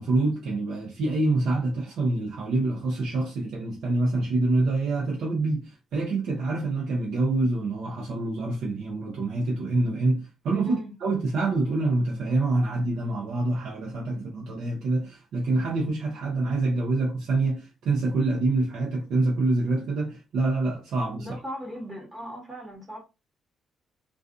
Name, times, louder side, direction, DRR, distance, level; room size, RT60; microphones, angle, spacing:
voice 1, 0.0-21.3, right 2 dB, 75° right, 0.7 m, -26 dB
voice 2, 21.2-23.0, equal, 20° right, 1.2 m, -37 dB
2.4 x 2.4 x 2.5 m
cardioid pair, 90°, 0 cm